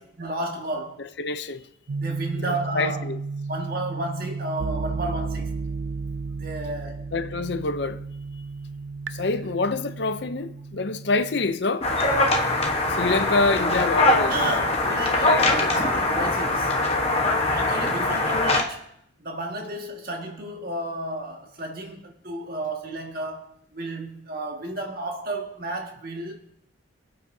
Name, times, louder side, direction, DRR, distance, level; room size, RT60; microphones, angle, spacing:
voice 1, 0.0-1.0 2.0-3.0 3.5-5.5 6.4-7.1 14.3-16.8 17.5-18.9 19.2-26.3, right 1 dB, 50° right, 1.8 m, -32 dB
voice 2, 1.2-1.6 2.4-3.2 7.1-8.0 9.1-11.9 12.9-14.3 15.1-15.7, left 3 dB, 55° left, 0.6 m, -26 dB
sound 1, 1.9-11.6, right 4 dB, 65° right, 0.4 m, -33 dB
sound 2, 11.8-18.6, left 2 dB, 30° left, 1.1 m, -22 dB
23.5 x 8.4 x 2.7 m
head